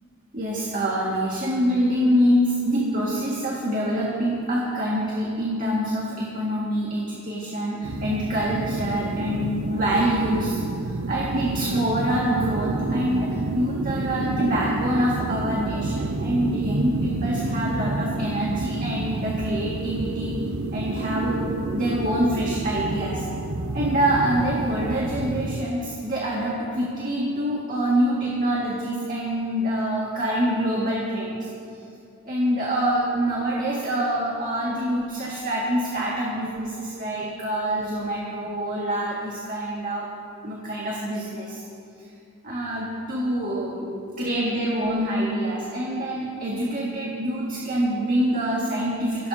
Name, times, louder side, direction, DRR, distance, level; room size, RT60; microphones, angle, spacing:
voice 1, 0.3-10.6 10.9-20.4 20.7-23.3 23.7-31.5 32.2-40.1 40.4-41.6 42.4-49.3, equal, 40° right, -4 dB, 2.0 m, -25 dB
sound 1, 7.8-25.6, right 2 dB, 85° right, 0.8 m, -29 dB
24.0 x 17.0 x 2.8 m, 2.5 s
head